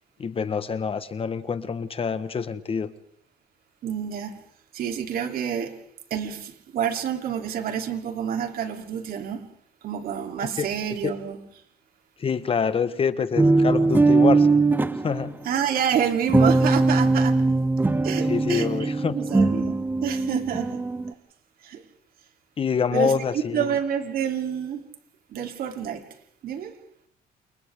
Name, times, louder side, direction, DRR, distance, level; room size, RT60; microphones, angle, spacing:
voice 1, 0.2-2.9 10.6-10.7 11.0-11.1 12.2-14.6 15.0-15.3 18.3-19.1 22.6-23.8, left 6 dB, 35° left, 1.3 m, -26 dB
voice 2, 3.8-4.4 4.7-5.8 6.1-9.4 9.8-11.4 15.4-17.5 18.0-20.8 21.6-21.8 22.9-24.9 25.3-26.0 26.4-26.7, right 8 dB, 60° right, 3.2 m, -28 dB
sound 1, 13.4-15.3 16.3-21.1, right 3 dB, 10° right, 0.9 m, -21 dB
29.0 x 29.0 x 3.7 m
cardioid pair, 110°, 17 cm